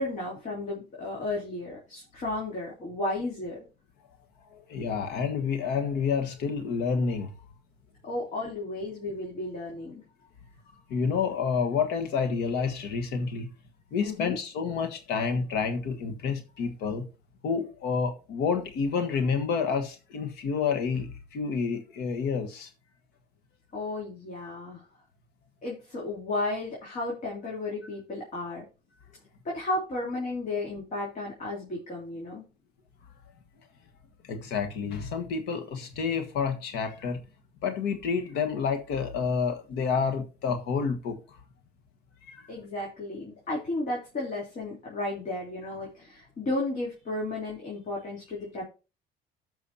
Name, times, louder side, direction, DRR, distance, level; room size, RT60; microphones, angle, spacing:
voice 1, 0.0-3.6 8.0-10.0 14.0-14.4 23.7-24.9 25.6-28.6 29.4-32.5 42.5-48.6, left 2 dB, 45° left, 3.5 m, -33 dB
voice 2, 4.5-7.3 10.9-13.5 13.9-17.1 17.4-22.7 34.2-37.2 37.6-41.4 42.3-42.5, left 5 dB, 85° left, 1.5 m, -29 dB
14.0 x 5.7 x 2.8 m
cardioid pair, 110°, 17 cm